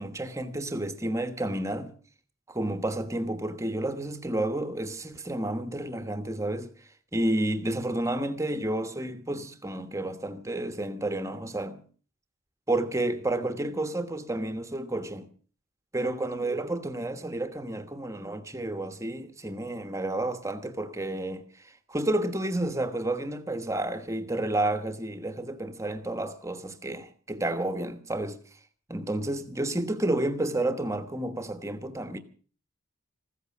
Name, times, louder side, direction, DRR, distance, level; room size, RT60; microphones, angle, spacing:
voice 1, 0.0-1.9 2.5-6.7 7.1-11.8 12.7-15.3 15.9-21.4 21.9-28.4 28.9-32.2, right 1 dB, 15° right, 1.2 m, -30 dB
15.0 x 14.0 x 6.1 m
head